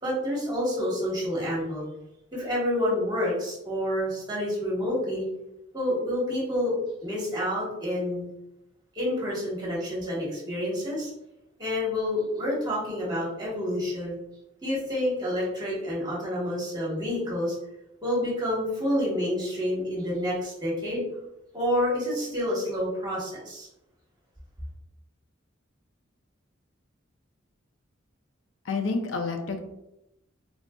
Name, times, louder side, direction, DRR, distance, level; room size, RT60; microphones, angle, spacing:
voice 1, 0.0-1.8 2.3-5.2 5.7-8.3 8.9-11.1 11.6-14.2 14.6-17.5 18.0-21.0 21.5-23.7, left 1 dB, 20° right, -6 dB, 1.1 m, -28 dB
voice 2, 28.7-29.6, left 4 dB, 65° left, 5 dB, 0.5 m, -29 dB
3.8 x 2.3 x 2.2 m, 0.89 s
head